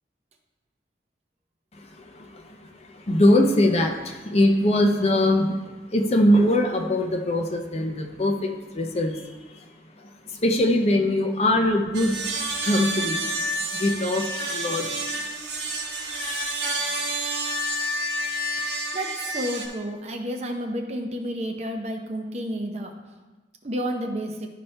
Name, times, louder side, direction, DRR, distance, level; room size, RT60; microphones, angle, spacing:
voice 1, 3.1-3.9 4.3-5.6 5.9-8.5 8.8-9.1 10.4-12.2 12.6-13.2 13.7-14.3 14.5-14.9, left 1 dB, 35° left, 3 dB, 0.6 m, -21 dB
sound 1, 11.9-19.7, right 1 dB, 75° right, 1.3 m, -29 dB
voice 2, 18.9-22.9 23.6-24.5, equal, 35° right, 4 dB, 0.7 m, -30 dB
12.0 x 4.2 x 3.3 m, 1.2 s
head